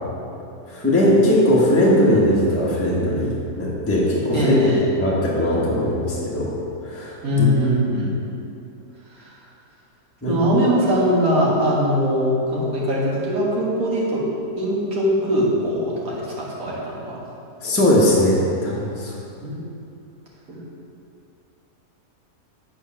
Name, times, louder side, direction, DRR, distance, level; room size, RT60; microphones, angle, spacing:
voice 1, 0.7-4.7 5.0-6.5 6.8-7.1 7.4-7.5 10.2-10.3 17.6-19.1, left 1 dB, 10° left, -7 dB, 1.2 m, -19 dB
voice 2, 4.3-4.8 7.2-8.1 9.1-9.3 10.3-14.2 14.6-17.2 19.4-19.5 20.5-20.6, equal, 65° right, -5 dB, 2.0 m, -21 dB
8.2 x 4.6 x 5.7 m, 2.7 s
omnidirectional pair, 1.7 m